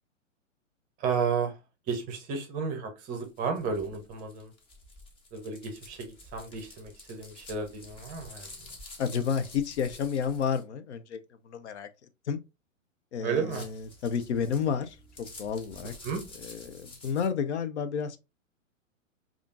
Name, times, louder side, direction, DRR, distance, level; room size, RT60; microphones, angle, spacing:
voice 1, 1.0-1.5 1.9-4.5 5.3-8.7 13.2-13.7 16.0-16.2, right 5 dB, 20° right, 0.7 m, -32 dB
sound 1, 3.2-10.6 13.3-17.3, left 2 dB, 15° left, 0.6 m, -50 dB
voice 2, 9.0-11.9 12.3-12.4 13.1-15.9 16.4-18.2, left 6 dB, 60° left, 0.5 m, -31 dB
4.9 x 2.4 x 2.5 m
figure-of-eight pair, 115°, 40 cm